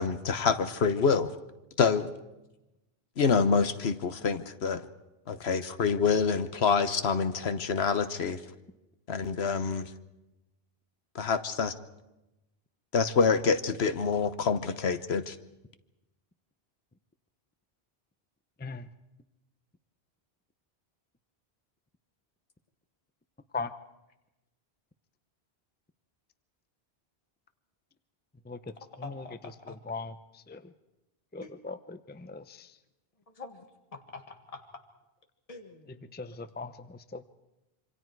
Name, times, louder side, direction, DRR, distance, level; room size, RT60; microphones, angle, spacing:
voice 1, 0.0-1.3 1.8-2.1 3.2-4.8 5.3-8.4 9.1-9.9 11.1-11.7 12.9-15.4, left 5 dB, 75° left, 11 dB, 1.2 m, -26 dB
voice 2, 29.0-29.8 31.4-31.5 33.3-33.7 33.9-34.6 35.5-36.2, left 3 dB, 35° left, 4 dB, 1.7 m, -46 dB
voice 3, 31.3-32.7 36.1-37.2, left 4 dB, 10° left, 12 dB, 0.5 m, -39 dB
26.5 x 25.0 x 4.7 m, 0.98 s
omnidirectional pair, 1.1 m